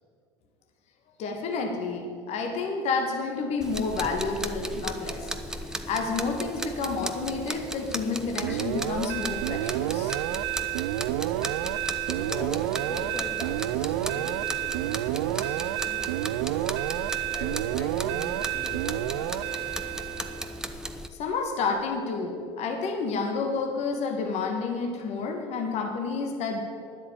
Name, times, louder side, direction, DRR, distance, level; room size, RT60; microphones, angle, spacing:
voice 1, 1.2-10.1 21.1-26.6, left 4 dB, 55° left, 3 dB, 1.7 m, -30 dB
sound 1, 3.6-21.1, right 1 dB, 5° right, 0.8 m, -36 dB
sound 2, 8.4-20.5, right 15 dB, 85° right, 0.4 m, -30 dB
voice 2, 12.1-16.1 17.3-19.5, left 2 dB, 20° left, 3 dB, 2.0 m, -41 dB
10.0 x 8.2 x 8.8 m, 2.3 s
supercardioid pair, 85°, 13 cm